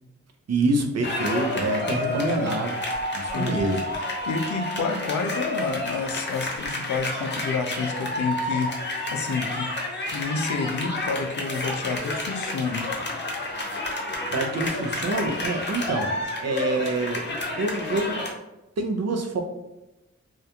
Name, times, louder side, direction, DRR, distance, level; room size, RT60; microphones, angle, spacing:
voice 1, 0.5-2.8 3.1-3.8 14.3-16.1 16.4-17.2 17.5-18.2 18.8-19.4, right 2 dB, 55° right, 4 dB, 0.6 m, -26 dB
sound 1, 1.0-18.3, left 2 dB, 35° left, 0.7 m, -30 dB
voice 2, 1.8-2.5 3.3-3.6 4.0-9.8 10.1-12.9, left 4 dB, 70° left, 4 dB, 0.5 m, -29 dB
2.4 x 2.2 x 2.8 m, 0.95 s
cardioid pair, 45°, 31 cm